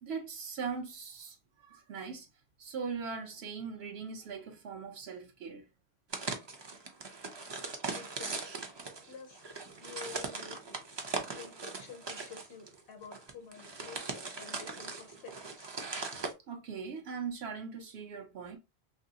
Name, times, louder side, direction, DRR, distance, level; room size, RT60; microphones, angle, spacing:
voice 1, 0.0-2.3 2.6-5.6 16.5-18.6, right 5 dB, 75° right, 0.8 m, -40 dB
sound 1, 6.1-16.3, right 3 dB, 45° right, 0.3 m, -40 dB
voice 2, 7.9-8.6 9.1-15.8, left 6 dB, 75° left, 0.9 m, -50 dB
2.9 x 2.6 x 2.7 m
omnidirectional pair, 1.1 m